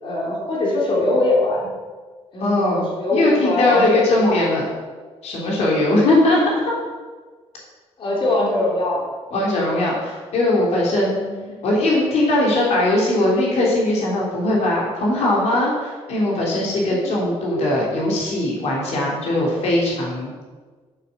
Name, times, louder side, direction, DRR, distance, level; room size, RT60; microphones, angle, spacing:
voice 1, 0.0-1.7 2.3-4.4 8.0-9.1 9.4-9.5 11.2-11.5 16.9-17.0 17.5-17.6, left 2 dB, 55° left, -3 dB, 3.7 m, -22 dB
voice 2, 2.4-2.8 3.1-4.6 5.2-6.4 9.3-11.2 11.6-20.3, left 1 dB, 85° left, -3 dB, 3.5 m, -20 dB
11.5 x 7.8 x 6.7 m, 1.4 s
cardioid pair, 155°, 11 cm